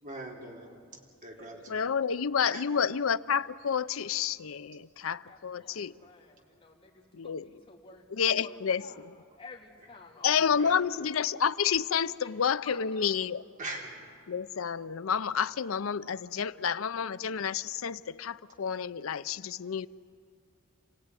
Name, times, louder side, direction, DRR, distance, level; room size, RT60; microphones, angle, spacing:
voice 1, 0.0-0.8 1.2-1.8 2.5-2.7 10.6-10.7 13.6-14.0, right 2 dB, 40° right, 3.8 m, -41 dB
voice 2, 1.7-5.9 7.1-7.5 8.1-9.1 10.2-13.4 14.3-19.9, left 7 dB, 80° left, 0.6 m, -30 dB
voice 3, 4.9-9.0 9.3-10.8 11.2-11.3 12.2-12.8, left 4 dB, 25° left, 3.2 m, -51 dB
28.0 x 16.5 x 9.8 m
head